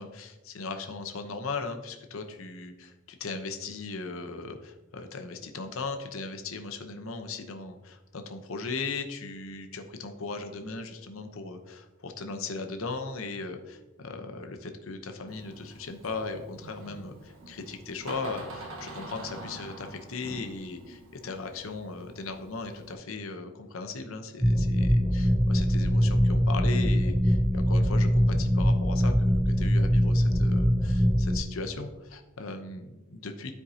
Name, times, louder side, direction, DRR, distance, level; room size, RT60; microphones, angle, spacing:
voice 1, 0.0-33.5, left 3 dB, 70° left, 6 dB, 0.8 m, -38 dB
Door, 15.3-22.9, right 1 dB, 70° right, 1.3 m, -46 dB
sound 1, 24.4-31.4, equal, 5° right, 0.4 m, -23 dB
12.5 x 4.6 x 2.8 m, 1.1 s
head